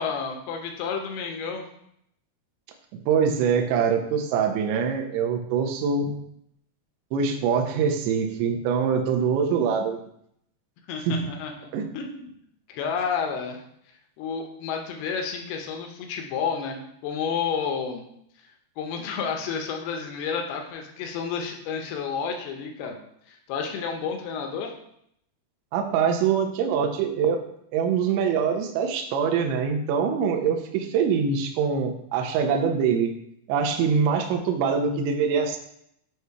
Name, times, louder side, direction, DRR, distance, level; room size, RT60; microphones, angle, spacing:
voice 1, 0.0-1.6 10.9-12.3 12.7-13.6 14.2-16.8 17.0-18.0 18.8-23.0 23.3-24.7, left 6 dB, 85° left, 3 dB, 2.2 m, -30 dB
voice 2, 3.1-6.2 7.1-10.0 11.1-11.3 11.7-11.9 25.7-27.4 27.7-33.1 33.5-35.6, right 6 dB, 85° right, 3 dB, 2.8 m, -24 dB
7.9 x 2.8 x 4.6 m, 0.72 s
omnidirectional pair, 5.3 m